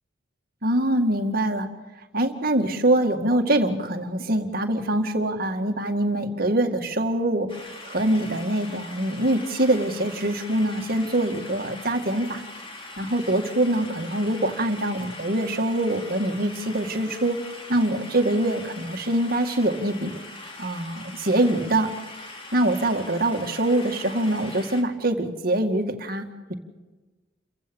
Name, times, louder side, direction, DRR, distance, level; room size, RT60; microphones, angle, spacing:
voice 1, 0.6-1.7 2.1-7.5 7.8-12.4 13.0-17.4 17.7-20.2 20.6-21.9 22.5-26.5, right 1 dB, 50° right, 5 dB, 2.1 m, -24 dB
sound 1, 7.5-24.8, left 2 dB, 30° left, 2.7 m, -42 dB
29.0 x 15.5 x 7.1 m, 1.2 s
head